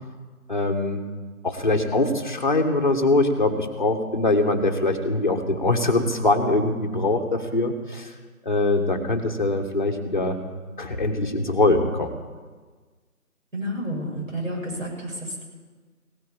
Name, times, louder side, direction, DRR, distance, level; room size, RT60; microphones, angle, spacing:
voice 1, 0.5-1.0 1.4-8.1 8.4-10.4 10.8-12.1, left 2 dB, 30° left, 4 dB, 1.6 m, -22 dB
voice 2, 13.5-15.4, equal, 60° right, -2 dB, 6.9 m, -30 dB
17.0 x 9.3 x 8.7 m, 1.4 s
figure-of-eight pair, 165°, 44 cm